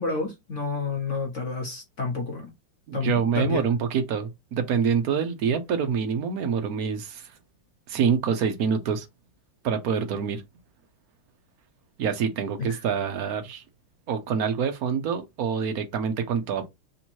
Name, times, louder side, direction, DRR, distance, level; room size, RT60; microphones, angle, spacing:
voice 1, 0.0-2.5 2.9-3.6 12.6-12.8, left 4 dB, 45° left, 1.0 m, -29 dB
voice 2, 2.9-7.3 7.9-9.1 9.6-10.4 12.0-13.6 14.1-16.7, right 6 dB, 75° right, 0.8 m, -26 dB
3.5 x 2.9 x 4.4 m
omnidirectional pair, 2.4 m